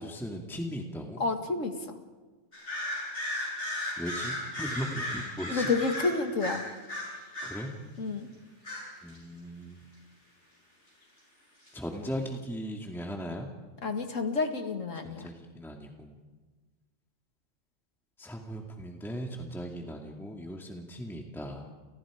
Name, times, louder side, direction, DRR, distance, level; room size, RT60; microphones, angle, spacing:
voice 1, 0.0-1.2 4.0-5.7 7.4-7.7 9.0-9.8 11.7-13.5 15.0-16.2 18.2-21.7, equal, ahead, 2 dB, 2.1 m, -38 dB
voice 2, 1.2-2.0 5.5-6.7 8.0-8.3 13.8-15.3, left 3 dB, 80° left, 6 dB, 2.4 m, -30 dB
sound 1, 2.5-7.7 8.6-9.2 11.7-11.8, left 1 dB, 65° left, 8.0 m, -35 dB
30.0 x 29.5 x 5.0 m, 1.3 s
omnidirectional pair, 1.3 m